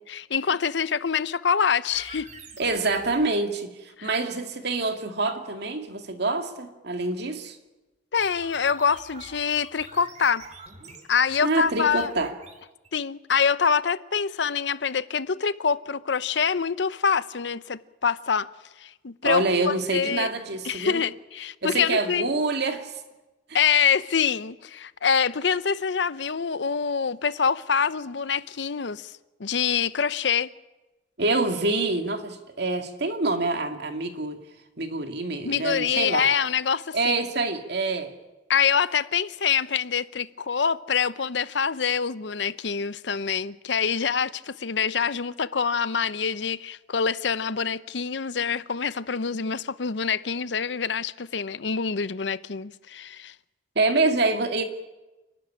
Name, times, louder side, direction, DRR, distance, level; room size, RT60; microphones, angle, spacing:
voice 1, 0.1-2.3 4.0-4.1 8.1-10.4 11.1-12.1 12.9-18.5 18.8-20.3 20.6-22.3 23.5-29.1 29.4-30.5 35.4-37.2 38.5-53.3, left 6 dB, 70° left, 0.7 m, -25 dB
sound 1, 1.9-3.3 8.2-12.9, right 4 dB, 40° right, 2.7 m, -46 dB
voice 2, 2.6-7.6 11.4-12.3 19.2-21.0 21.6-22.9 31.2-34.4 34.8-36.3 36.9-38.1 53.8-54.6, right 3 dB, 60° right, 2.2 m, -26 dB
28.5 x 12.0 x 10.0 m
head